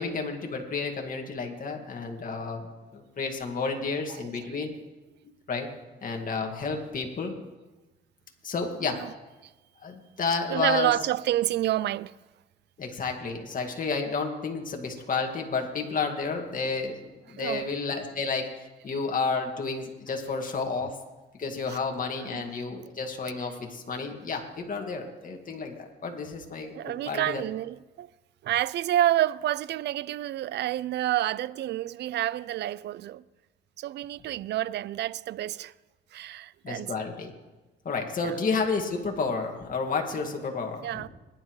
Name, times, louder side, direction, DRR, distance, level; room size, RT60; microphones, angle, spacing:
voice 1, 0.0-4.7 5.5-5.7 6.0-7.4 8.4-9.0 9.8-10.9 12.8-21.0 21.4-27.4 36.6-37.3 37.8-40.9, left 4 dB, 45° left, 2.1 m, -31 dB
voice 2, 4.1-4.6 8.9-9.1 9.4-9.5 10.5-12.1 17.3-17.7 21.7-21.8 22.2-22.4 26.7-28.1 28.4-33.2 33.8-35.7 36.1-36.9 38.2-38.4 40.8-41.1, right 13 dB, 60° right, 0.4 m, -29 dB
20.5 x 10.5 x 3.2 m
cardioid pair, 90°, 20 cm